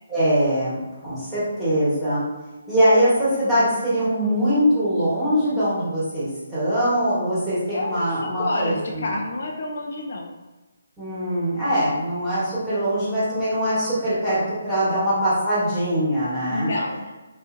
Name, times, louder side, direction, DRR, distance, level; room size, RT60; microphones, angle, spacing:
voice 1, 0.1-2.2 2.7-9.1 11.0-16.7, equal, 5° right, -13 dB, 1.1 m, -22 dB
voice 2, 7.7-10.3 16.5-17.2, left 2 dB, 55° left, 0 dB, 0.4 m, -29 dB
3.9 x 2.4 x 2.5 m, 1.1 s
hypercardioid pair, 170°, 0 cm